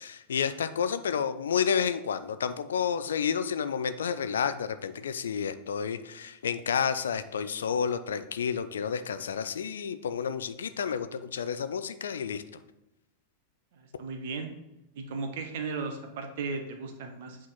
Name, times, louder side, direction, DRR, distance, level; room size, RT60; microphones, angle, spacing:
voice 1, 0.0-12.4, left 7 dB, 65° left, 11 dB, 0.4 m, -30 dB
voice 2, 13.7-14.5 15.0-17.4, right 4 dB, 55° right, 5 dB, 1.0 m, -36 dB
8.3 x 3.7 x 4.1 m, 0.92 s
figure-of-eight pair, 90°, 0 cm